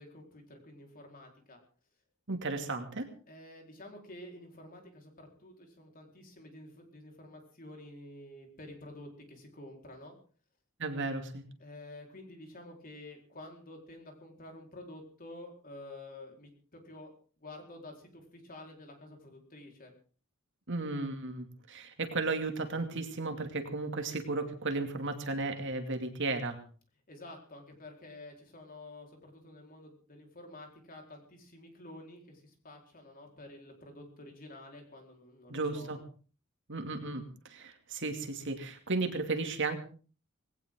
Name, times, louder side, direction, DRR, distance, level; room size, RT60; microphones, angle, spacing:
voice 1, 0.0-1.6 3.3-10.2 11.6-17.1 17.4-19.9 27.1-36.0, left 1 dB, 40° left, 2 dB, 4.5 m, -50 dB
voice 2, 2.3-3.1 10.8-11.4 20.7-26.6 35.5-36.0 36.7-39.8, right 3 dB, 60° right, 5 dB, 2.6 m, -34 dB
19.5 x 17.5 x 3.9 m, 0.39 s
head